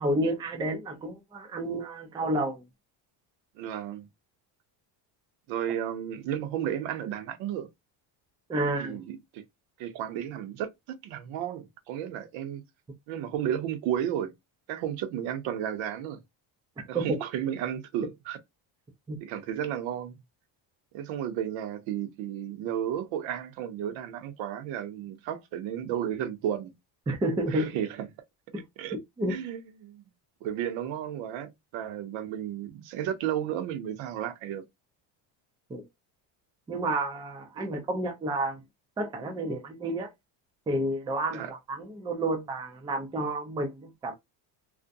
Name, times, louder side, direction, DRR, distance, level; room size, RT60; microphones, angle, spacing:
voice 1, 0.0-2.6 8.5-9.0 16.9-17.2 19.1-19.2 27.1-27.7 28.5-28.6 29.2-29.3 35.7-35.8 36.7-38.6 39.0-40.1 40.7-43.7 44.0-44.1, right 1 dB, 10° right, 0.3 m, -30 dB
voice 2, 3.6-4.1 5.5-7.7 8.8-9.4 9.8-12.6 13.1-14.3 14.7-16.2 16.9-18.4 19.2-20.2 20.9-26.7 27.5-28.1 28.8-29.0 29.2-30.0 30.4-34.6 37.6-37.7 41.3-41.5, right 10 dB, 70° right, 0.7 m, -33 dB
2.4 x 2.1 x 2.5 m
cardioid pair, 130°, 48 cm